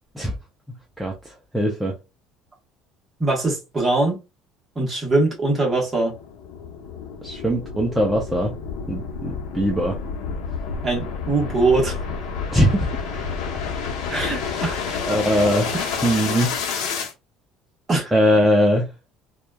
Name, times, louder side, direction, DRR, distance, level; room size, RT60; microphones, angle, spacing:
voice 1, 1.5-1.9 7.2-8.5 8.9-10.0 12.5-13.2 15.1-15.7 16.0-16.5 18.1-18.9, equal, 5° right, 0.5 m, -20 dB
voice 2, 3.2-4.2 4.7-6.1 10.8-12.0 14.1-15.0 15.7-16.0 17.9-18.1, right 2 dB, 20° right, 1.2 m, -22 dB
sound 1, 5.7-17.1, left 5 dB, 80° left, 0.9 m, -29 dB
2.8 x 2.3 x 2.2 m
cardioid pair, 145°, 0 cm